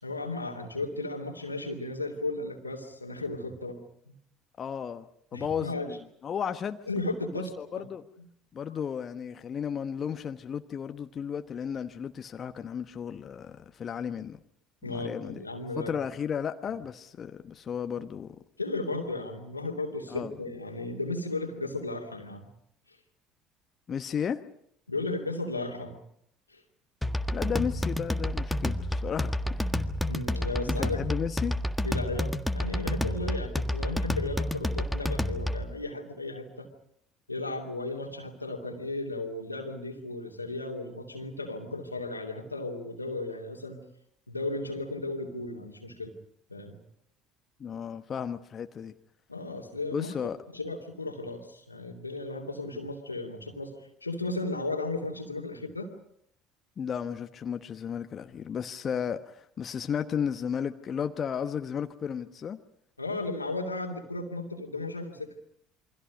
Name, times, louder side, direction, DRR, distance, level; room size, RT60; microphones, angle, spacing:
voice 1, 0.0-3.8 4.1-4.2 5.3-6.0 6.9-7.5 7.8-7.9 14.8-15.9 18.6-22.5 22.9-23.0 24.9-26.0 26.5-26.6 30.0-31.0 31.8-36.7 37.3-43.8 44.3-46.1 46.5-46.8 49.3-50.2 50.5-55.9 63.0-65.3, left 2 dB, 90° left, 2 dB, 2.6 m, -35 dB
voice 2, 4.6-6.0 6.2-6.8 7.3-8.0 8.5-14.4 14.9-15.4 15.8-18.4 20.1-20.3 23.9-24.4 27.3-29.6 30.8-31.6 47.6-48.9 49.9-50.4 56.8-62.6, left 7 dB, 40° left, 8 dB, 1.1 m, -34 dB
sound 1, 27.0-35.7, left 1 dB, 5° left, 1.6 m, -30 dB
28.5 x 24.5 x 5.2 m, 0.71 s
figure-of-eight pair, 60°, 0 cm